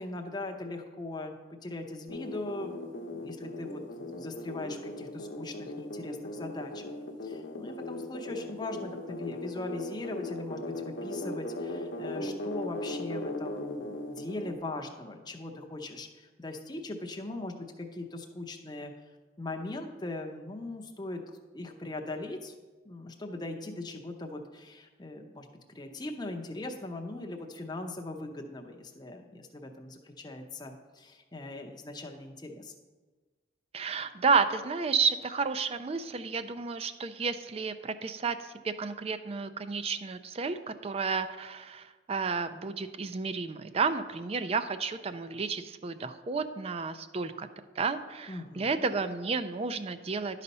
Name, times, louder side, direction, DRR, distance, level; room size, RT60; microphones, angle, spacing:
voice 1, 0.0-6.9 7.2-18.9 19.4-22.5 22.8-32.7 48.3-48.9, left 2 dB, 20° left, 3 dB, 0.6 m, -40 dB
sound 1, 2.1-14.5, left 1 dB, 75° left, 0.8 m, -38 dB
voice 2, 33.7-47.5 47.8-50.4, right 5 dB, 30° right, 11 dB, 0.4 m, -31 dB
11.0 x 4.1 x 5.4 m, 1.3 s
head